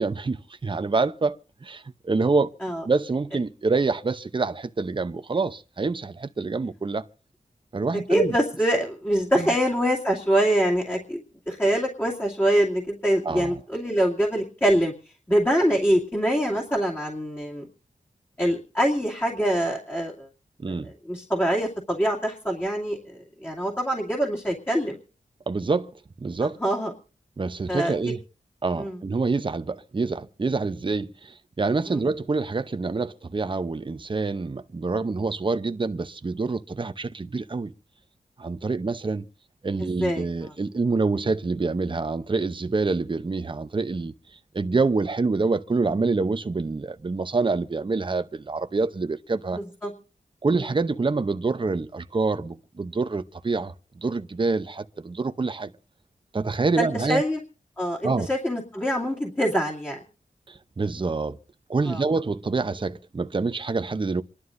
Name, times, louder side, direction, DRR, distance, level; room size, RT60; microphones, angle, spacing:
voice 1, 0.0-2.5 2.8-7.1 7.7-8.4 9.4-9.5 13.2-13.6 20.6-20.9 25.5-25.9 26.2-26.6 27.4-28.2 28.6-37.7 38.4-39.3 39.6-44.1 44.5-49.6 50.4-55.7 56.3-57.2 58.0-58.3 60.5-61.4 61.7-64.2, right 3 dB, 35° right, 0.7 m, -26 dB
voice 2, 8.1-11.2 11.5-14.9 15.3-17.7 18.4-20.3 21.1-25.0 26.6-26.9 27.7-27.9 28.8-29.0 31.9-32.0 39.8-40.3 49.5-49.9 56.8-57.4 57.8-60.0 61.9-62.0, equal, 15° left, 2.5 m, -24 dB
28.0 x 11.5 x 2.6 m
wide cardioid pair, 70°, 15 cm